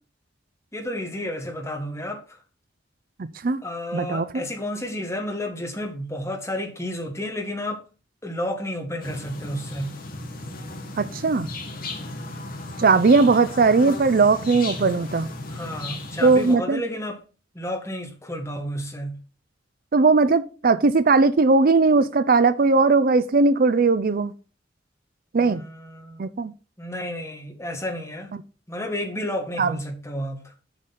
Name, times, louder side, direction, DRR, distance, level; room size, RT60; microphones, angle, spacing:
voice 1, 0.7-2.4 3.6-7.8 8.2-9.9 15.5-17.2 17.5-19.2 25.4-26.3 26.8-28.4 28.7-30.4, left 1 dB, 15° left, 1.8 m, -31 dB
voice 2, 3.9-4.3 11.0-11.5 12.8-15.3 16.2-16.8 19.9-24.3 25.3-25.6 26.2-26.5 29.6-29.7, right 4 dB, 50° right, 0.5 m, -18 dB
sound 1, 9.0-16.6, left 2 dB, 50° left, 2.0 m, -35 dB
7.3 x 6.7 x 4.2 m
head